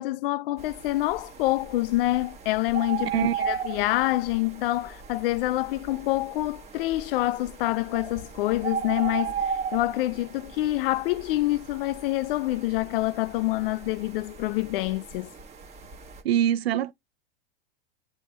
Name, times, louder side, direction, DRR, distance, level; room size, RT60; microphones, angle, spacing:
voice 1, 0.0-15.3, left 17 dB, 65° left, 0.5 m, -27 dB
sound 1, 0.6-16.2, right 6 dB, 20° right, 1.9 m, -37 dB
voice 2, 3.1-3.5 16.2-16.9, right 10 dB, 85° right, 0.7 m, -24 dB
8.4 x 2.8 x 4.1 m
hypercardioid pair, 120°, 30 cm